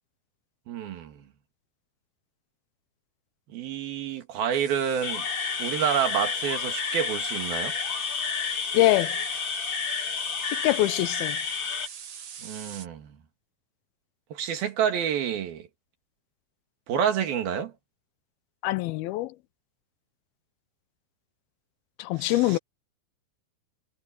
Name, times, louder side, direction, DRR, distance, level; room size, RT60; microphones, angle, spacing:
voice 1, 0.7-1.2 3.5-5.3 5.6-7.7 12.4-13.2 14.3-15.7 16.9-17.7 22.2-22.6, right 8 dB, 75° right, 4.0 m, -28 dB
sound 1, 4.5-12.9, right 7 dB, 50° right, 2.9 m, -43 dB
sound 2, 5.0-11.9, left 6 dB, 45° left, 1.7 m, -30 dB
voice 2, 8.7-9.1 10.5-11.4 18.6-19.3 22.0-22.6, left 17 dB, 85° left, 2.6 m, -24 dB
omnidirectional pair, 4.3 m